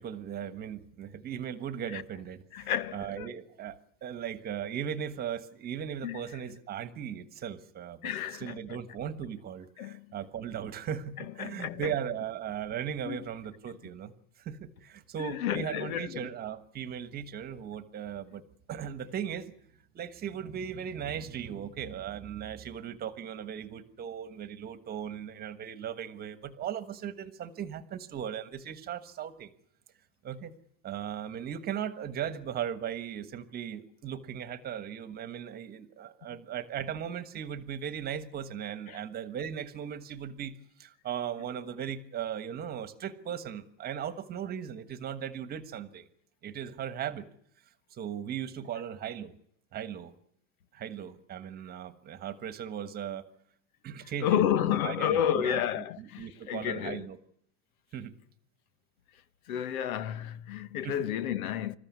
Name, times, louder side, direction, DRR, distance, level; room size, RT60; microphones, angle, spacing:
voice 1, 0.0-8.1 8.4-14.1 14.4-18.4 18.7-19.5 19.9-29.5 30.2-30.5 30.8-46.0 46.4-47.3 47.9-49.3 49.7-50.1 50.7-53.2 53.8-55.6 56.0-57.2 57.9-58.1 60.8-61.1, right 9 dB, 20° right, 1.4 m, -37 dB
voice 2, 2.5-3.3 6.0-6.2 8.0-8.8 9.8-10.2 11.2-11.9 13.0-13.2 15.2-16.3 38.9-39.0 54.2-57.1 59.5-61.7, left 10 dB, 85° left, 1.5 m, -31 dB
27.0 x 14.5 x 9.6 m
supercardioid pair, 170°, 41 cm